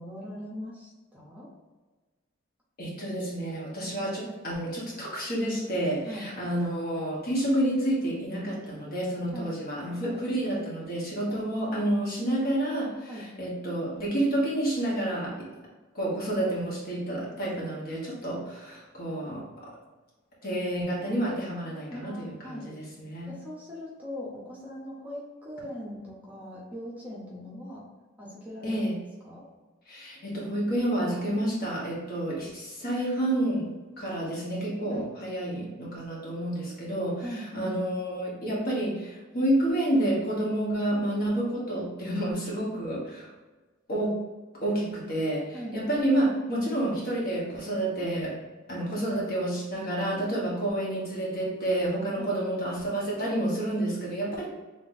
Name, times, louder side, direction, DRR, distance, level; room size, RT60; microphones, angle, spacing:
voice 1, 0.0-1.5 6.0-6.3 9.3-9.5 10.0-10.2 11.3-11.4 13.1-13.2 21.9-22.6 23.3-27.9 28.2-28.7 29.2-29.4 34.9-35.1 37.2-37.7 45.5-45.8 52.2-52.3, equal, 10° right, -6 dB, 0.8 m, -40 dB
voice 2, 2.8-15.5 15.9-19.4 20.4-23.4 28.6-29.0 29.9-33.7 34.0-43.3 43.9-44.2 44.6-48.4 48.7-54.5, right 1 dB, 50° left, -5 dB, 1.3 m, -29 dB
3.4 x 2.9 x 4.1 m, 1.3 s
head